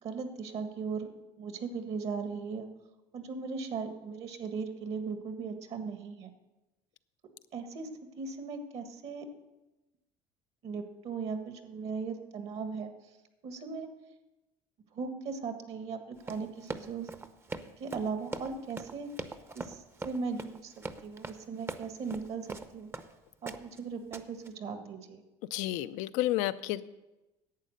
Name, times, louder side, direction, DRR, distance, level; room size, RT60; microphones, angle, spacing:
voice 1, 0.0-2.7 3.1-6.3 7.5-9.3 10.6-12.9 13.4-13.9 14.9-17.1 17.8-19.1 19.5-20.7 21.0-22.9 23.4-25.2, right 5 dB, 55° right, 7 dB, 1.6 m, -38 dB
Run, 16.2-23.1 23.5-23.8 24.1-24.5, right 3 dB, 20° right, 0.7 m, -41 dB
voice 2, 25.5-26.8, left 15 dB, 80° left, 14 dB, 0.5 m, -31 dB
11.5 x 8.3 x 6.6 m, 1.0 s
supercardioid pair, 105°, 12 cm